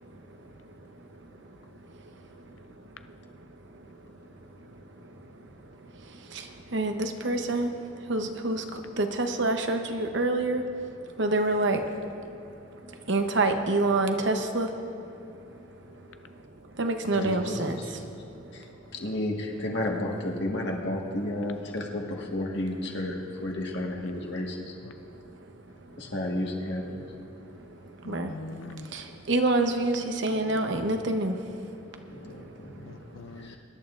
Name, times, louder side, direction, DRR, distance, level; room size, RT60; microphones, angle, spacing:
voice 1, 6.7-7.7 8.1-8.6 9.0-10.6 11.2-11.8 13.1-14.7 16.8-17.8 28.1-28.3 28.9-31.3, right 2 dB, 65° right, 5 dB, 0.9 m, -26 dB
voice 2, 17.1-17.9 18.5-18.6 19.0-24.7 26.0-27.0 32.1-32.9 33.4-33.6, left 1 dB, 60° left, -1 dB, 1.6 m, -32 dB
voice 3, 28.0-28.9 30.3-30.8 32.9-33.6, left 3 dB, 85° left, 10 dB, 0.4 m, -43 dB
24.5 x 11.0 x 2.6 m, 2.8 s
head